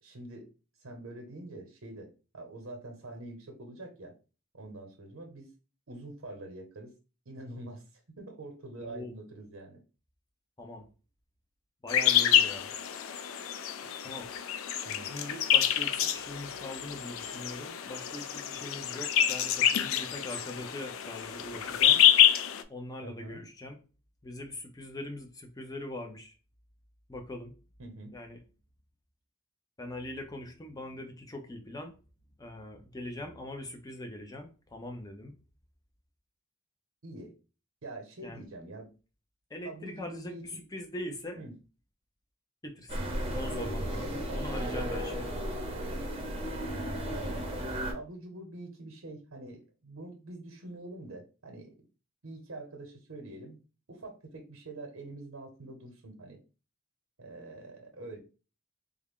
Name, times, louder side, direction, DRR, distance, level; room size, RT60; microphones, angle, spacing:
voice 1, 0.0-0.5 0.8-4.1 4.5-5.5 5.9-6.9 7.3-9.8 14.8-15.1 23.0-23.4 27.8-28.1 37.0-37.3 37.8-38.9 39.6-40.6 41.4-41.5 44.3-44.5 47.2-47.4 47.9-51.8 52.2-53.6 53.9-56.4 57.2-58.2, right 2 dB, 80° right, 3 dB, 0.8 m, -45 dB
voice 2, 8.8-9.1 10.6-10.9 11.8-12.7 14.0-14.3 15.0-22.0 22.7-23.8 24.2-26.4 27.1-27.5 28.1-28.4 29.8-31.9 32.4-35.4 38.2-38.4 39.5-41.4 42.6-43.1 43.3-45.4, left 1 dB, 20° left, 4 dB, 0.6 m, -42 dB
sound 1, 11.9-22.6, left 10 dB, 75° left, 0.4 m, -27 dB
sound 2, 42.9-47.9, equal, 25° right, 0.7 m, -34 dB
3.5 x 2.1 x 3.6 m, 0.33 s
head